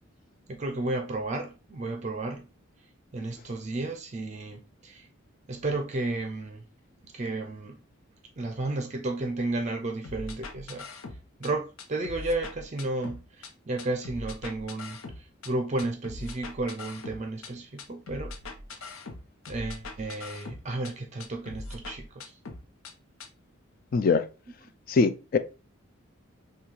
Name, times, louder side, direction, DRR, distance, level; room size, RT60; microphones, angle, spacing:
voice 1, 0.5-2.5 3.1-5.1 5.5-6.6 7.0-7.8 8.4-10.9 11.4-18.3 19.5-22.3, right 2 dB, 35° right, 0.5 m, -33 dB
sound 1, 10.0-11.5 11.8-13.5 13.8-15.5 15.8-17.5 17.8-20.9 21.2-22.9 23.2-23.3, left 3 dB, 90° left, 0.7 m, -41 dB
voice 2, 23.9-24.3 24.9-25.4, left 4 dB, 45° left, 0.3 m, -22 dB
5.8 x 2.3 x 3.1 m
head